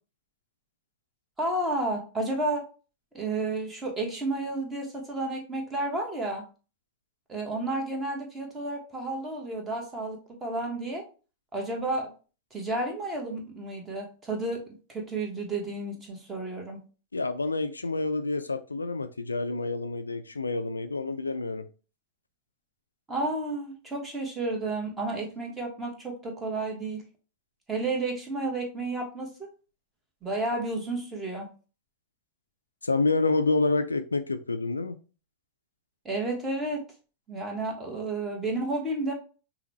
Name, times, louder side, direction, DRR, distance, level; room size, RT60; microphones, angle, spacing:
voice 1, 1.4-2.6 3.1-6.4 7.3-11.0 11.5-12.1 12.5-14.6 14.9-16.8 23.1-27.0 27.7-29.3 30.2-31.5 36.0-36.8 37.3-39.1, right 2 dB, 15° right, 1 dB, 1.3 m, -31 dB
voice 2, 17.1-21.7 32.8-35.0, left 3 dB, 80° left, 10 dB, 0.3 m, -28 dB
5.6 x 2.3 x 3.0 m, 0.35 s
figure-of-eight pair, 90°, 0 cm